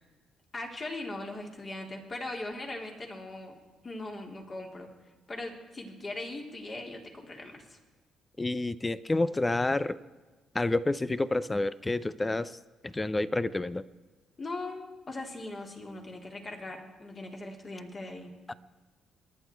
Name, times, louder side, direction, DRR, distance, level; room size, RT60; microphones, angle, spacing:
voice 1, 0.5-3.6 3.8-4.9 5.3-7.8 14.4-18.3, left 2 dB, 35° left, 1 dB, 3.5 m, -40 dB
voice 2, 8.4-10.0 10.5-12.5 12.8-13.8 18.5-18.6, left 2 dB, 20° left, 16 dB, 0.7 m, -29 dB
26.5 x 11.5 x 4.6 m, 1.3 s
cardioid pair, 90°, 0 cm